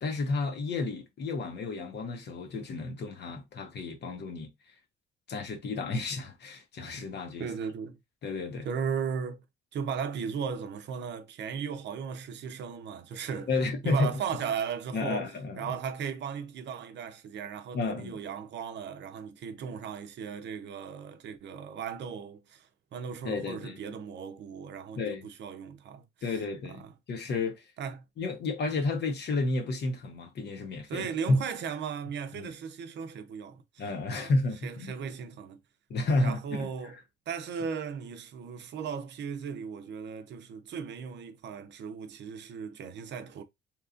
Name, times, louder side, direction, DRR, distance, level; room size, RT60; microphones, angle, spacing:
voice 1, 0.0-4.5 5.3-7.5 8.2-8.7 13.5-14.2 14.9-15.7 17.7-18.2 23.2-23.8 25.0-25.3 26.2-27.7 28.2-31.4 32.3-32.5 33.8-34.9 35.9-36.9, left 3 dB, 60° left, 0.8 m, -31 dB
voice 2, 7.4-8.0 8.7-9.4 9.7-13.5 13.8-15.3 15.6-26.0 26.8-26.9 27.8-28.0 30.9-33.8 34.1-34.3 34.6-35.6 36.2-37.0 37.3-43.4, right 7 dB, 65° right, 0.6 m, -36 dB
2.9 x 2.4 x 2.4 m
cardioid pair, 90°, 20 cm